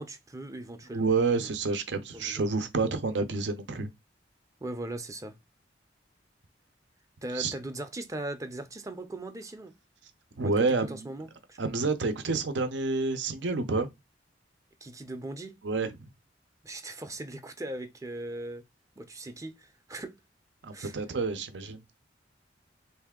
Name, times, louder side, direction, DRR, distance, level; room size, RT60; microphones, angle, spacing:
voice 1, 0.0-1.5 2.1-2.6 4.6-5.4 7.2-9.7 10.4-11.6 14.8-15.6 16.6-18.7 19.0-20.2 20.7-21.0, right 1 dB, 20° right, 0.5 m, -39 dB
voice 2, 0.9-3.9 7.3-7.5 10.4-11.0 11.6-13.9 15.6-16.1 20.6-21.8, right 3 dB, 80° right, 0.6 m, -29 dB
3.3 x 2.7 x 3.6 m
head